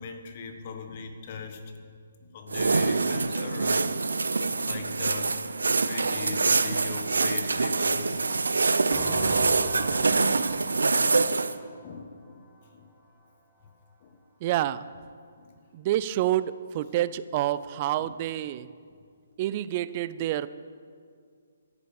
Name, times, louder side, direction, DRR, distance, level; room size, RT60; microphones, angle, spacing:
voice 1, 0.0-1.9 2.2-3.9 4.6-8.2 10.5-11.5 11.8-12.4 12.7-12.9 14.0-14.2 15.4-15.6 18.0-18.1, left 5 dB, 45° left, 5 dB, 1.5 m, -40 dB
sound 1, 2.5-11.5, right 3 dB, 80° right, 0.6 m, -25 dB
sound 2, 8.9-12.6, right 1 dB, 5° left, 1.8 m, -39 dB
voice 2, 14.4-14.9 15.7-18.7 19.4-20.5, right 13 dB, 35° right, 16 dB, 0.5 m, -28 dB
10.5 x 10.5 x 7.1 m, 2.2 s
hypercardioid pair, 145°, 0 cm